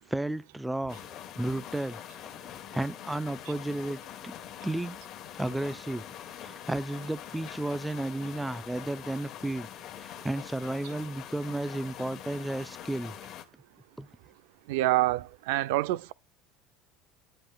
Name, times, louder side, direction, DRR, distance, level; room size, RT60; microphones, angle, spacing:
voice 1, 0.1-1.0 1.4-2.0 2.7-4.3 4.6-5.0 5.4-6.1 6.4-9.7 10.0-13.1 14.0-14.1, right 1 dB, 5° right, 0.3 m, -33 dB
sound 1, 0.9-13.4, left 11 dB, 45° left, 1.2 m, -44 dB
voice 2, 14.7-16.1, right 16 dB, 85° right, 0.4 m, -26 dB
10.5 x 7.6 x 2.3 m
cardioid pair, 145°, 0 cm